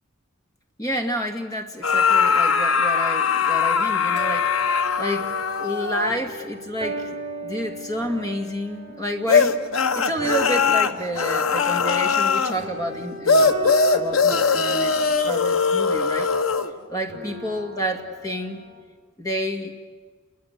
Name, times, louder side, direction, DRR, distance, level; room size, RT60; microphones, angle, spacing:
voice 1, 0.8-5.3 5.6-16.3 16.9-18.6 19.2-19.7, equal, 15° left, 4 dB, 2.2 m, -29 dB
sound 1, 1.8-6.3 9.3-12.6 13.3-16.7, left 5 dB, 85° left, 1.2 m, -21 dB
sound 2, 3.7-18.8, right 1 dB, 35° right, 4.8 m, -38 dB
28.0 x 22.0 x 8.3 m, 1.4 s
head